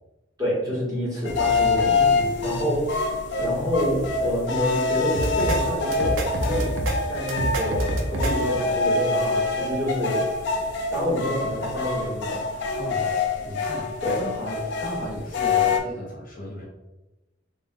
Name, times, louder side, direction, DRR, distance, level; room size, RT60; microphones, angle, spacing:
voice 1, 0.4-2.1 2.4-2.8 3.4-6.8 7.1-10.2 10.9-12.4 14.0-14.2, equal, 20° right, -7 dB, 1.2 m, -27 dB
sound 1, 1.2-15.8, left 3 dB, 60° left, 0.4 m, -26 dB
voice 2, 2.0-2.4 12.8-13.1 13.4-16.6, equal, 45° left, -4 dB, 0.9 m, -35 dB
sound 2, 5.1-5.6 5.9-6.9 7.3-8.3, right 1 dB, 80° right, 0.6 m, -26 dB
3.3 x 2.4 x 2.5 m, 1.0 s
head